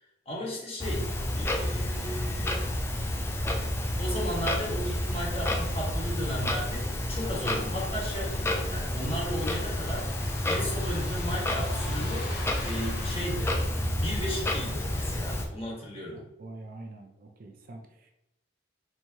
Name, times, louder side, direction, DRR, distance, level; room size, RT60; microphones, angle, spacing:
voice 1, 0.3-2.6 4.0-13.5 13.9-16.2, equal, 35° left, -4 dB, 1.2 m, -35 dB
Clock, 0.8-15.5, left 1 dB, 15° left, 0.4 m, -30 dB
Truck, 1.0-13.9, left 2 dB, 60° left, 0.8 m, -45 dB
voice 2, 16.1-18.1, right 2 dB, 50° right, 4 dB, 0.5 m, -45 dB
4.5 x 2.7 x 2.8 m, 0.90 s
head